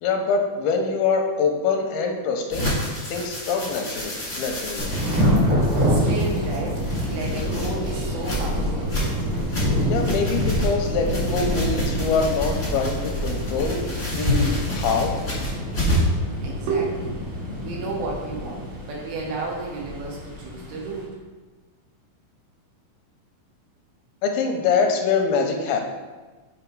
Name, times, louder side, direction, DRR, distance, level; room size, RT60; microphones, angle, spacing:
voice 1, 0.0-2.7 3.1-5.0 9.9-15.1 24.2-25.8, left 5 dB, 85° left, 3 dB, 2.6 m, -24 dB
sound 1, 2.5-16.2, equal, 40° left, 0.8 m, -28 dB
Thunder / Rain, 4.8-21.0, equal, 35° right, 1.1 m, -27 dB
voice 2, 5.7-9.0 16.4-17.2 17.6-21.1, right 3 dB, 90° right, -2 dB, 3.1 m, -31 dB
sound 2, 7.8-13.6, equal, 70° right, 1.6 m, -33 dB
6.9 x 3.7 x 4.6 m, 1.3 s
omnidirectional pair, 4.3 m